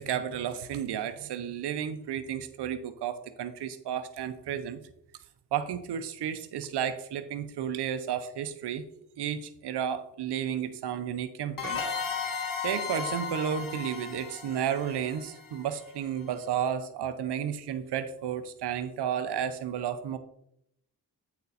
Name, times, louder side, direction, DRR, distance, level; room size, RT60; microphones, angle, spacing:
voice 1, 0.0-4.8 5.5-8.9 9.2-11.8 12.6-20.2, right 9 dB, 70° right, 12 dB, 0.7 m, -32 dB
sound 1, 11.6-16.1, left 5 dB, 55° left, 1.5 m, -35 dB
8.1 x 4.2 x 4.0 m, 0.76 s
supercardioid pair, 45°, 42 cm